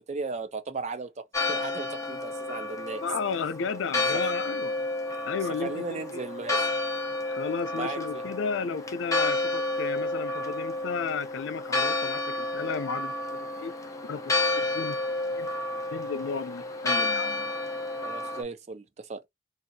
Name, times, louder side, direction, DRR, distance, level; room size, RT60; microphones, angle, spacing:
voice 1, 0.1-3.0 4.1-4.2 5.5-6.7 7.7-8.2 18.0-19.2, right 4 dB, 40° right, 0.4 m, -36 dB
Church bell, 1.3-18.4, left 2 dB, 15° left, 0.5 m, -30 dB
voice 2, 3.0-4.8 5.2-6.2 7.3-13.7 14.1-15.0 15.4-15.5 15.9-17.6, left 5 dB, 85° left, 0.4 m, -34 dB
2.7 x 2.3 x 2.6 m
head